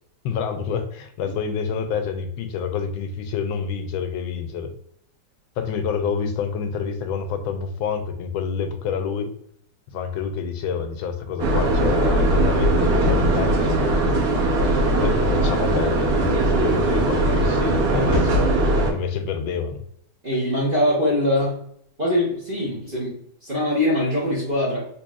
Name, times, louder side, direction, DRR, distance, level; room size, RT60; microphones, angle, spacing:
voice 1, 0.2-4.7 5.6-9.3 9.9-14.2 14.7-19.8, left 6 dB, 80° left, 7 dB, 1.4 m, -28 dB
sound 1, 11.4-18.9, right 1 dB, 55° right, 1.2 m, -20 dB
voice 2, 20.2-21.6 22.0-23.2 23.4-24.9, left 1 dB, 40° right, -7 dB, 0.8 m, -22 dB
4.0 x 3.1 x 2.3 m, 0.68 s
omnidirectional pair, 2.2 m